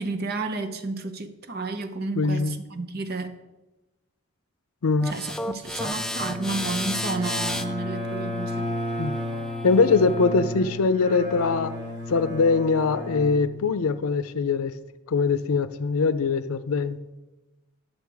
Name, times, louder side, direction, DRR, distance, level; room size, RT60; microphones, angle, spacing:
voice 1, 0.0-3.4 5.0-8.8, right 3 dB, 45° right, 0.7 m, -31 dB
voice 2, 2.2-2.6 4.8-5.1 9.0-9.1 9.6-11.8 12.1-14.7 15.1-17.0, left 4 dB, 85° left, 0.5 m, -22 dB
sound 1, 5.0-10.2, left 1 dB, ahead, 0.3 m, -34 dB
Bowed string instrument, 5.6-14.1, left 1 dB, 20° right, 2.4 m, -33 dB
10.0 x 6.5 x 4.7 m
head